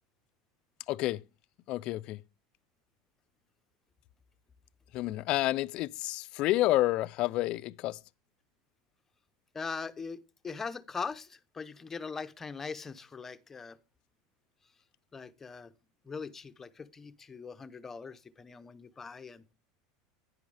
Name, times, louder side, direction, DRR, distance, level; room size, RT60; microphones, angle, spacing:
voice 1, 0.9-1.2 1.7-2.2 4.9-8.0, left 16 dB, 45° left, 0.4 m, -29 dB
voice 2, 9.5-13.8 15.1-15.7 16.0-19.4, left 5 dB, 15° left, 0.7 m, -41 dB
10.5 x 9.4 x 3.3 m
supercardioid pair, 140°, 2 cm